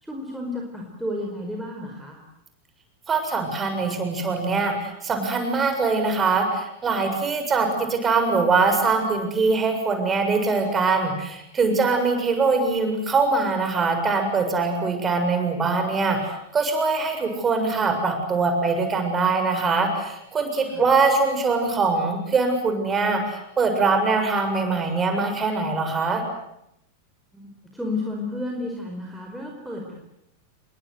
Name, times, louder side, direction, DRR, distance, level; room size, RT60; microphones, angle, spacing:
voice 1, 0.0-2.2 20.7-20.9 27.3-29.9, left 2 dB, ahead, 0 dB, 5.0 m, -32 dB
voice 2, 3.1-26.2, right 4 dB, 20° right, 5 dB, 7.2 m, -23 dB
29.0 x 23.0 x 8.2 m, 0.80 s
figure-of-eight pair, 90°, 0 cm